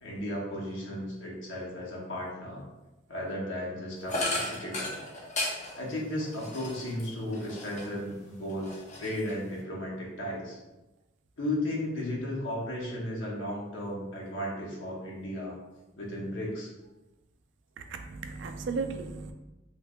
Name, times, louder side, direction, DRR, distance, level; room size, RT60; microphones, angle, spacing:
voice 1, 0.0-2.6 3.1-5.0 5.7-8.7 9.0-10.6 11.4-15.6 16.0-16.7, left 1 dB, 80° left, -4 dB, 1.0 m, -35 dB
sound 1, 4.1-8.1 8.5-9.6, left 1 dB, 35° left, 0.6 m, -35 dB
voice 2, 17.8-19.3, right 4 dB, 65° right, 6 dB, 0.3 m, -35 dB
3.2 x 3.0 x 2.4 m, 1.0 s
head